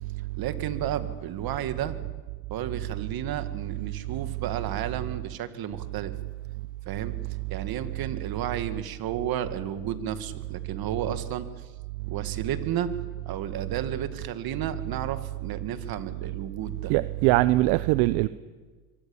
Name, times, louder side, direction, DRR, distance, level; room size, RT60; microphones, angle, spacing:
voice 1, 0.3-2.0 2.5-6.1 6.9-7.2 7.5-11.5 12.1-12.9 13.3-16.9, right 10 dB, 50° right, 2.1 m, -32 dB
voice 2, 16.9-18.3, right 18 dB, 70° right, 0.9 m, -21 dB
25.0 x 23.0 x 7.2 m
supercardioid pair, 105°, 47 cm